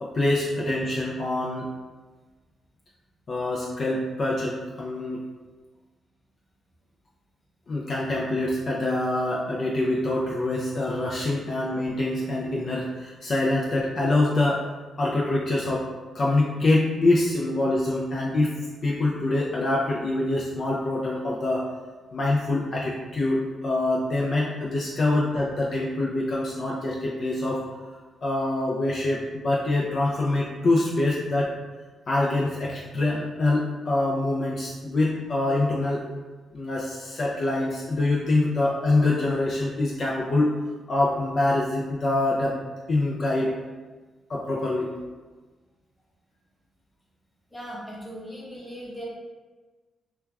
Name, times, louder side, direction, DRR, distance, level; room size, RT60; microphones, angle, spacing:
voice 1, 0.0-1.7 3.3-5.2 7.7-14.7 15.0-15.9 16.1-21.7 22.1-27.9 28.2-31.5 32.1-36.0 36.5-40.5 40.9-42.6 42.9-43.5 44.3-44.9, left 2 dB, 55° left, -4 dB, 0.4 m, -25 dB
voice 2, 47.5-49.0, equal, 15° left, -5 dB, 1.0 m, -38 dB
2.3 x 2.2 x 3.2 m, 1.3 s
cardioid pair, 65°, 0 cm